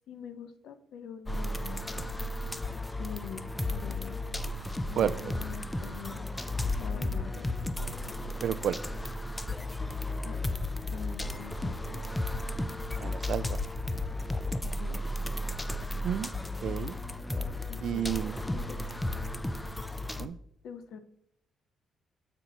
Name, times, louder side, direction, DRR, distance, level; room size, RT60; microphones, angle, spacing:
voice 1, 0.1-2.1 3.0-4.6 4.9-6.3 6.8-7.7 10.2-10.4 10.9-12.0 14.8-15.3 17.7-18.2 18.5-18.8 20.1-20.3 20.6-21.0, left 6 dB, 80° left, 11 dB, 0.7 m, -45 dB
sound 1, 1.3-20.3, left 1 dB, 10° left, 0.5 m, -34 dB
sound 2, 4.2-10.9, equal, 60° left, 1.1 m, -57 dB
voice 2, 8.4-8.8 13.0-13.6 16.0-16.4 16.6-17.0 17.8-18.4 20.2-20.4, right 9 dB, 65° right, 17 dB, 0.3 m, -31 dB
8.3 x 4.5 x 4.0 m, 0.75 s
cardioid pair, 90°, 0 cm